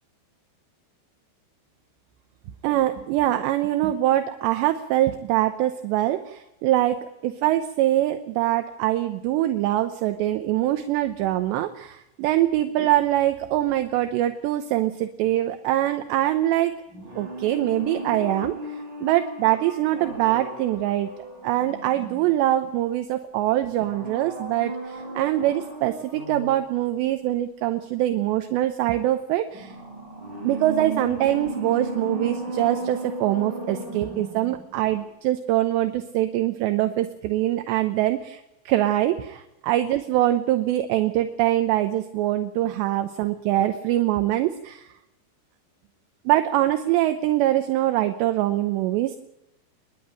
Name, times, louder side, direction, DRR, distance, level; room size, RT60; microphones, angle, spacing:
voice 1, 2.6-16.7 17.2-21.1 21.4-29.8 30.4-44.9 46.3-49.2, right 14 dB, 80° right, 8 dB, 2.9 m, -23 dB
sound 1, 16.9-22.7 23.7-26.7 29.5-34.7 35.0-35.1, right 2 dB, 25° right, 6.0 m, -35 dB
28.0 x 11.0 x 8.8 m, 0.91 s
omnidirectional pair, 5.4 m